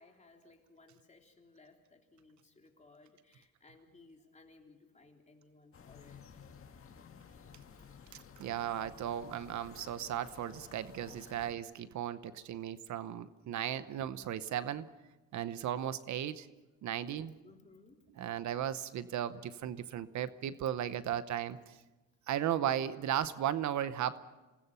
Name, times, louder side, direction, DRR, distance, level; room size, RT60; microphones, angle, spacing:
voice 1, 0.0-6.3 17.4-18.0, left 3 dB, 25° left, 2 dB, 3.5 m, -61 dB
sound 1, 5.7-11.5, left 6 dB, 45° left, 1.9 m, -54 dB
voice 2, 8.4-14.9 15.3-16.5 16.8-17.3 18.2-21.8 22.3-24.2, right 10 dB, 70° right, 14 dB, 0.9 m, -36 dB
27.5 x 20.0 x 5.6 m, 1.1 s
cardioid pair, 90°, 30 cm